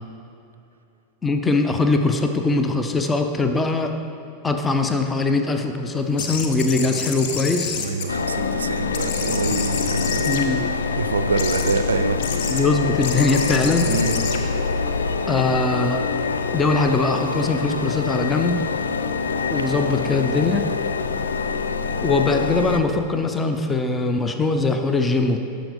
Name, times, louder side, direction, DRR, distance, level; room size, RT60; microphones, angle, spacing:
voice 1, 1.2-3.9 4.4-7.9 10.3-10.6 12.5-13.9 15.3-16.0 16.5-18.6 19.5-20.6 22.0-25.4, left 3 dB, 15° left, 5 dB, 0.5 m, -21 dB
sound 1, 6.2-8.6 8.9-10.9 11.4-11.8 12.2-12.6 13.0-15.5, left 6 dB, 50° left, 0.7 m, -30 dB
voice 2, 7.8-12.2 13.8-14.2, right 4 dB, 70° right, 11 dB, 0.4 m, -26 dB
sound 2, 8.1-22.8, left 4 dB, 70° left, 0.4 m, -25 dB
13.0 x 5.1 x 3.5 m, 2.8 s
figure-of-eight pair, 90°, 0 cm